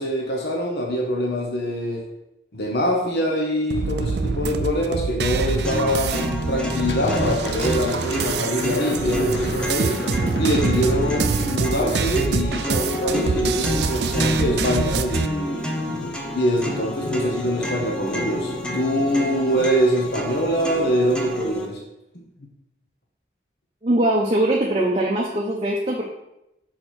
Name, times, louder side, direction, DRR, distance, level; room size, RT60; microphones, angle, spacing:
voice 1, 0.0-2.1 2.5-10.0 10.4-15.8 16.3-21.8, equal, 60° left, -1 dB, 1.0 m, -24 dB
sound 1, 3.7-15.3, right 4 dB, 70° right, 0.4 m, -25 dB
sound 2, 5.6-21.6, equal, 5° left, 0.6 m, -29 dB
Thunder, 5.9-6.3 6.7-21.1, left 2 dB, 90° left, 0.7 m, -35 dB
voice 2, 23.8-26.0, right 1 dB, 30° right, -2 dB, 0.7 m, -21 dB
6.3 x 4.3 x 4.4 m, 0.88 s
head